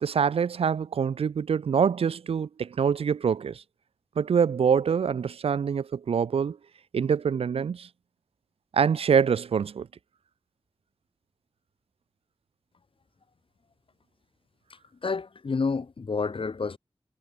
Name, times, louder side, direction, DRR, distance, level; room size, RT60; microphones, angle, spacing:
voice 1, 0.0-3.6 4.2-6.6 6.9-7.9 8.7-9.9, right 7 dB, 75° right, 0.4 m, -25 dB
voice 2, 15.0-16.8, left 4 dB, 65° left, 3.1 m, -29 dB
wide cardioid pair, 85°, 10 cm